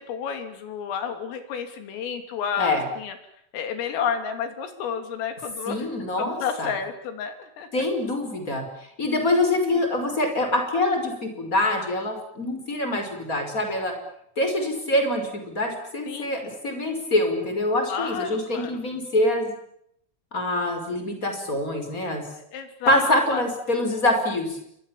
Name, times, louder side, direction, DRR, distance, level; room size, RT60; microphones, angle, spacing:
voice 1, 0.0-3.1 3.5-5.9 6.2-7.8 16.1-16.3 17.9-18.7 22.5-23.4, left 7 dB, 85° left, 7 dB, 5.6 m, -31 dB
voice 2, 5.7-6.7 7.7-13.9 14.4-19.5 20.3-22.2 22.9-24.6, left 1 dB, 15° left, 5 dB, 5.2 m, -25 dB
28.5 x 24.0 x 7.4 m, 0.73 s
omnidirectional pair, 5.7 m